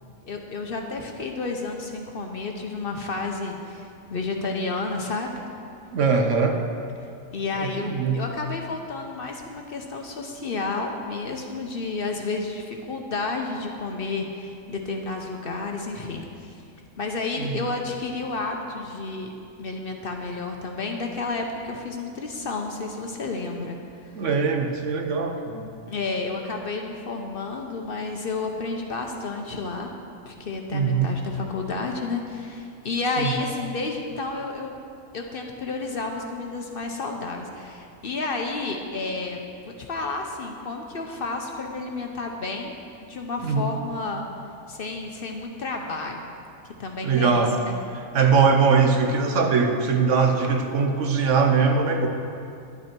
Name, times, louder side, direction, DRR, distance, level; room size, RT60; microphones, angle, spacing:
voice 1, 0.2-5.3 7.3-16.6 17.0-19.3 19.6-24.3 25.9-29.9 30.3-34.7 35.1-42.7 43.1-44.2 44.7-46.2 46.8-47.7, left 3 dB, 50° left, 2 dB, 0.9 m, -31 dB
voice 2, 5.9-6.6 7.5-8.2 17.4-17.7 24.2-25.7 30.7-31.1 33.2-33.3 43.4-43.7 47.0-47.6 48.1-52.1, right 5 dB, 70° right, 4 dB, 1.2 m, -21 dB
11.0 x 9.1 x 4.5 m, 2.5 s
omnidirectional pair, 1.4 m